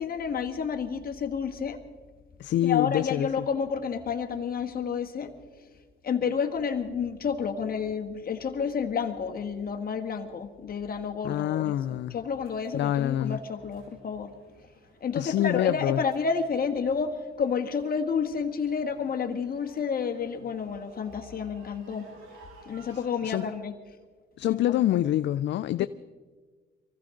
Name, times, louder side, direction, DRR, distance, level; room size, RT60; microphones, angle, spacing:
voice 1, 0.0-1.8 2.6-5.3 6.0-14.3 15.0-22.1 22.7-23.7 24.4-24.6 24.9-25.0 25.8-25.9, left 6 dB, 50° left, 1.6 m, -30 dB
voice 2, 2.4-3.3 11.2-12.2 12.7-13.4 15.2-16.0 23.2-23.5 24.4-25.9, left 13 dB, 65° left, 0.4 m, -26 dB
sound 1, 12.4-23.5, right 3 dB, 90° right, 5.2 m, -56 dB
24.0 x 15.5 x 3.8 m
cardioid pair, 90°, 20 cm